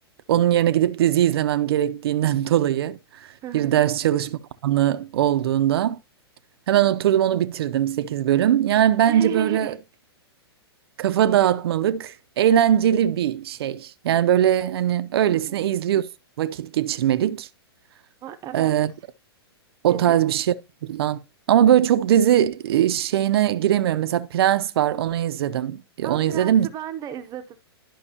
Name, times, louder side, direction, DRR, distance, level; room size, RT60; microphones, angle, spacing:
voice 1, 0.3-3.3 3.5-6.0 6.7-9.7 11.0-16.1 16.4-17.5 18.5-18.9 19.8-20.5 20.8-21.2 21.5-26.7, right 11 dB, 70° right, 0.6 m, -21 dB
voice 2, 3.4-3.7 9.1-9.8 15.3-15.6 18.2-18.7 19.9-20.1 26.0-27.6, right 11 dB, 25° right, 0.7 m, -33 dB
11.5 x 5.3 x 2.8 m
hypercardioid pair, 130°, 14 cm